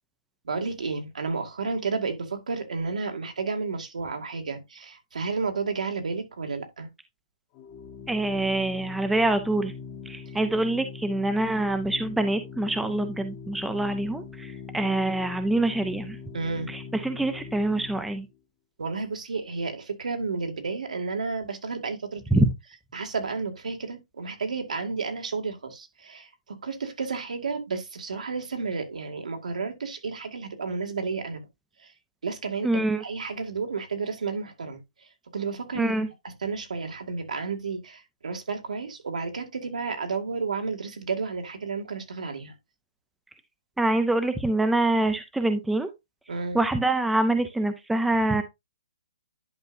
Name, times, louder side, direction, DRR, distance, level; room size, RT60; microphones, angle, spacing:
voice 1, 0.4-6.9 10.3-10.4 16.3-16.7 18.8-22.4 22.9-31.4 31.8-31.9 32.2-36.1 36.4-42.5 46.3-46.6, right 4 dB, 85° right, 2.2 m, -32 dB
Organ, 7.5-18.3, left 6 dB, 20° left, 0.8 m, -41 dB
voice 2, 8.1-9.7 10.1-16.2 16.7-18.3 22.3-22.5 32.6-33.0 35.8-36.1 43.8-45.9 46.5-48.4, right 2 dB, ahead, 0.4 m, -25 dB
10.5 x 5.2 x 2.6 m
hypercardioid pair, 170°, 4 cm